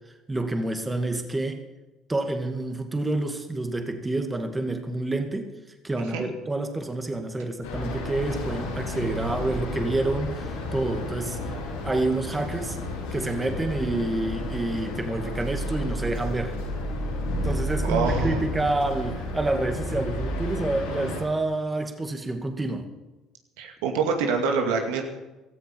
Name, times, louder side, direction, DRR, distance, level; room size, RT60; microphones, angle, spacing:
voice 1, 0.3-1.6 2.1-5.5 5.8-11.4 11.8-12.8 13.1-16.6 17.4-22.9, right 2 dB, 15° right, 5 dB, 2.3 m, -28 dB
voice 2, 5.9-6.2 17.8-18.4 23.6-25.0, right 5 dB, 80° right, 4 dB, 2.3 m, -26 dB
sound 1, 7.6-21.2, left 1 dB, 90° left, 6.7 m, -31 dB
17.0 x 14.0 x 5.4 m, 1.1 s
hypercardioid pair, 70°, 0 cm